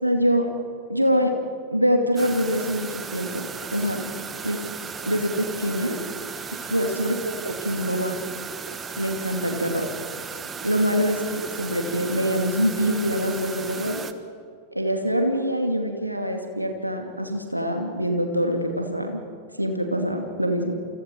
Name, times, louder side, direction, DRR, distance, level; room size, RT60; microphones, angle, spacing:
voice 1, 0.0-0.5 0.9-1.3 1.7-4.1 4.4-4.6 5.0-6.0 6.7-7.2 7.4-8.2 9.0-9.9 10.6-14.0 14.7-19.2 19.6-20.8, equal, 90° right, 3 dB, 2.6 m, -24 dB
sound 1, 2.2-14.1, right 6 dB, 20° right, 1.3 m, -36 dB
28.5 x 28.5 x 4.7 m, 2.3 s
figure-of-eight pair, 90°, 0 cm